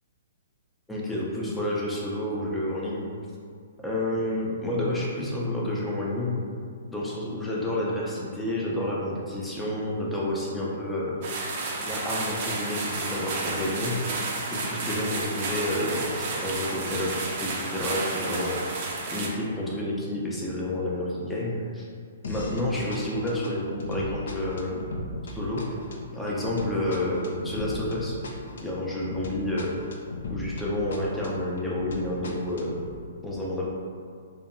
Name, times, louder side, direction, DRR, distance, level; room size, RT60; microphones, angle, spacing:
voice 1, 0.9-3.1 3.8-6.4 6.9-11.2 11.9-14.0 14.5-18.6 19.1-21.9 22.2-24.9 25.3-25.8 26.1-28.2 28.6-29.7 30.3-32.7 33.2-33.7, left 1 dB, 5° left, -5 dB, 0.5 m, -29 dB
sound 1, 11.2-19.3, right 3 dB, 45° right, 0.4 m, -31 dB
sound 2, 22.2-22.7 22.9-30.7 30.9-32.9, left 2 dB, 70° left, 0.4 m, -37 dB
2.6 x 2.2 x 2.5 m, 2.2 s
hypercardioid pair, 125°, 0 cm